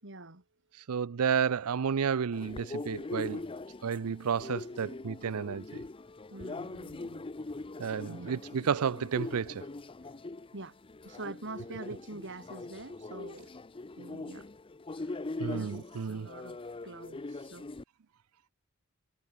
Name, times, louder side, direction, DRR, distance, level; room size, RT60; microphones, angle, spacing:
voice 1, 0.0-0.4 6.3-7.3 8.1-8.4 10.0-10.2 10.5-10.8 11.0-13.5 14.0-14.5 14.9-17.7, right 2 dB, 55° right, 3.3 m, -46 dB
voice 2, 0.9-3.5 3.8-5.8 7.8-9.6 15.4-16.3, right 6 dB, 85° right, 0.5 m, -31 dB
sound 1, 2.3-17.8, left 2 dB, 25° left, 0.5 m, -42 dB
head